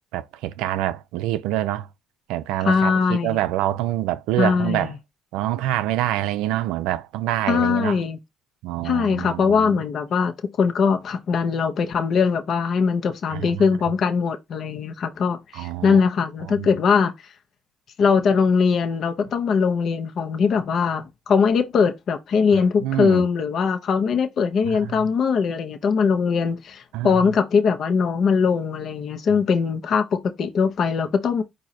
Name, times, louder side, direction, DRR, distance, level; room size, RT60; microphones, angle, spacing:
voice 1, 0.1-1.9 2.3-4.9 5.3-8.0 8.6-9.8 13.3-13.8 15.5-16.0 16.5-16.7 22.5-23.3 24.7-25.1 26.9-27.3 29.3-29.4, right 14 dB, 85° right, 0.4 m, -26 dB
voice 2, 2.6-3.4 4.4-4.9 7.5-8.2 8.8-17.1 18.0-31.4, left 5 dB, 60° left, 1.0 m, -21 dB
4.8 x 2.6 x 4.2 m
supercardioid pair, 75°, 0 cm